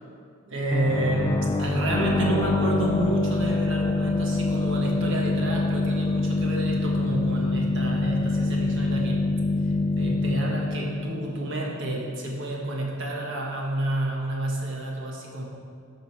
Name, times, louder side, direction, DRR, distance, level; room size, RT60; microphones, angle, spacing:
voice 1, 0.5-9.2 9.6-15.4, right 1 dB, 65° right, -2 dB, 1.5 m, -29 dB
sound 1, 0.7-12.2, left 2 dB, 20° left, 0.3 m, -25 dB
13.5 x 5.3 x 4.6 m, 2.2 s
head